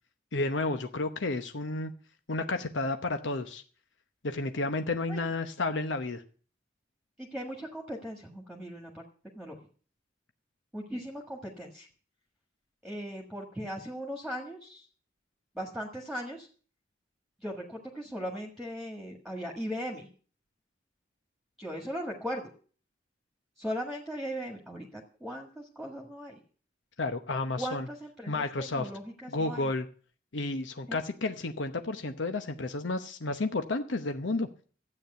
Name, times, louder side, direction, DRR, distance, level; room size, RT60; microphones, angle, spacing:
voice 1, 0.3-1.9 2.3-3.6 4.2-6.2 27.0-27.9 28.3-28.9 29.3-29.9 30.3-34.5, left 2 dB, 90° left, 7 dB, 0.9 m, -31 dB
voice 2, 7.2-9.0 9.4-9.6 10.7-11.9 12.8-14.9 15.6-16.5 17.4-20.1 21.6-22.5 23.6-26.4 27.6-29.7 30.9-31.0, equal, ahead, 1 dB, 1.7 m, -38 dB
13.0 x 8.8 x 6.7 m, 0.42 s
head